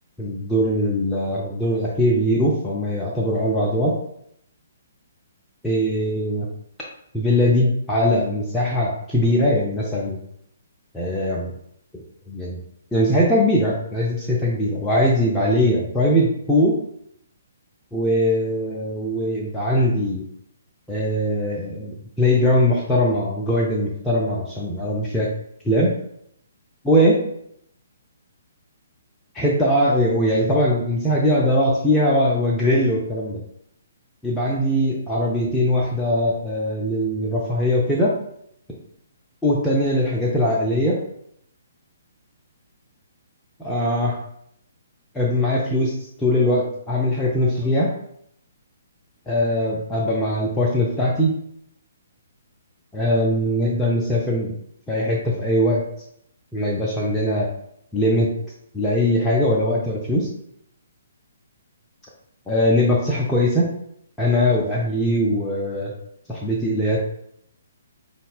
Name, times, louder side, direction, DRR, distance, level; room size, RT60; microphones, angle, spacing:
voice 1, 0.2-4.0 5.6-6.5 7.1-10.2 10.9-11.5 12.3-12.6 12.9-16.8 17.9-20.3 20.9-25.3 25.6-25.9 26.8-27.2 29.3-33.4 34.2-38.1 39.4-41.0 43.6-44.2 45.1-47.9 49.3-51.3 52.9-54.5 54.9-55.8 56.5-57.5 57.9-58.3 58.7-60.3 62.5-63.7 64.2-65.9 66.3-67.0, equal, 5° left, -5 dB, 0.5 m, -21 dB
5.2 x 2.1 x 2.3 m, 0.71 s
figure-of-eight pair, 130°, 0 cm